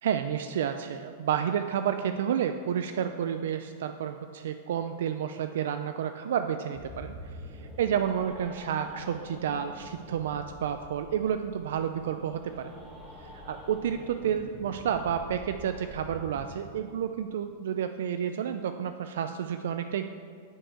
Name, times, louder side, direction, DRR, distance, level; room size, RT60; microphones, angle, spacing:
voice 1, 0.0-7.1 7.5-12.7 13.3-20.1, right 8 dB, 80° right, 8 dB, 0.3 m, -30 dB
sound 1, 6.7-16.5, equal, 5° right, 1.1 m, -47 dB
8.9 x 4.5 x 4.5 m, 2.1 s
supercardioid pair, 150°, 0 cm